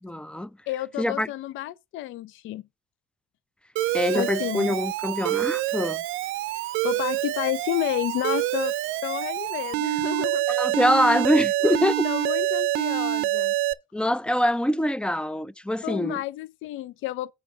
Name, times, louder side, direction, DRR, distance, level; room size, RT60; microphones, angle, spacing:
voice 1, 0.0-0.5 1.0-1.3 3.9-6.0 10.5-12.1 13.9-16.2, left 1 dB, 5° left, 0.4 m, -24 dB
voice 2, 0.7-2.6 4.1-4.8 6.5-8.7 9.0-10.5 12.0-13.5 15.8-17.3, left 15 dB, 80° left, 0.4 m, -31 dB
Alarm, 3.8-13.7, right 15 dB, 90° right, 0.5 m, -26 dB
7.9 x 4.9 x 5.9 m
cardioid pair, 90°, 20 cm